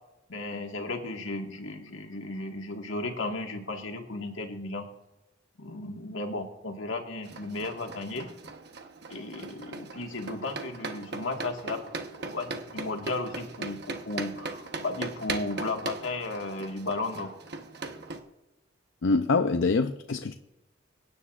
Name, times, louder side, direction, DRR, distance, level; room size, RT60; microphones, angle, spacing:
voice 1, 0.3-4.9 5.6-8.3 9.1-11.8 12.2-17.3, left 2 dB, 90° left, 3 dB, 1.7 m, -34 dB
sound 1, 7.2-18.2, right 3 dB, 55° right, 1.1 m, -39 dB
voice 2, 19.0-20.3, left 3 dB, 70° left, 7 dB, 0.5 m, -25 dB
23.5 x 9.7 x 2.5 m, 0.97 s
head